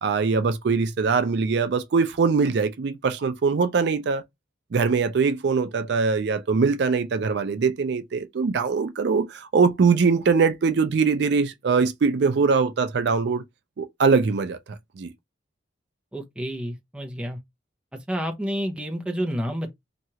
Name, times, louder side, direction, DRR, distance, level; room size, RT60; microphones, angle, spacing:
voice 1, 0.0-4.2 4.7-13.4 13.8-14.6 15.0-15.1, right 5 dB, 60° right, 0.4 m, -22 dB
voice 2, 16.1-17.4 18.1-19.7, equal, 5° right, 0.5 m, -29 dB
2.9 x 2.3 x 2.7 m
head